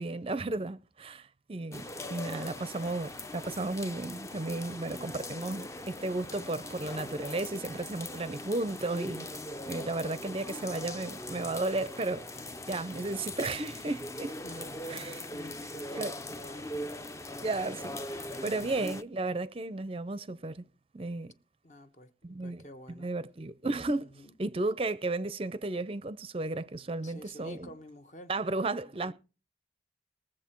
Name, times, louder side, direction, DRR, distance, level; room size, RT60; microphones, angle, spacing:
voice 1, 0.0-9.3 9.7-12.2 12.7-14.4 14.9-15.3 15.9-16.1 17.4-20.6 20.9-21.3 22.2-22.6 22.9-24.1 24.4-27.7 28.3-29.1, right 2 dB, 30° right, 0.5 m, -34 dB
sound 1, 1.7-19.0, left 1 dB, 15° left, 0.5 m, -41 dB
voice 2, 4.6-5.2 14.4-14.8 15.3-16.7 18.3-18.6 21.6-23.1 23.9-24.3 27.0-28.3 28.8-29.1, equal, 40° left, 1.1 m, -49 dB
20.5 x 7.7 x 4.5 m
head